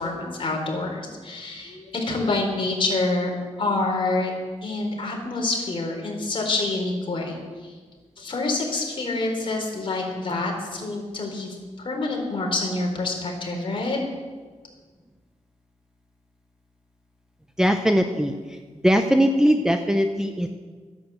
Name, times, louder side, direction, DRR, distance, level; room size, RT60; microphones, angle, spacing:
voice 1, 0.0-3.3 3.6-4.3 4.6-7.7 8.2-14.0, left 2 dB, 45° left, 0 dB, 3.9 m, -27 dB
voice 2, 17.6-18.6 18.8-20.5, equal, 5° right, 5 dB, 0.7 m, -20 dB
12.5 x 10.5 x 8.0 m, 1.5 s
wide cardioid pair, 130°, 13 cm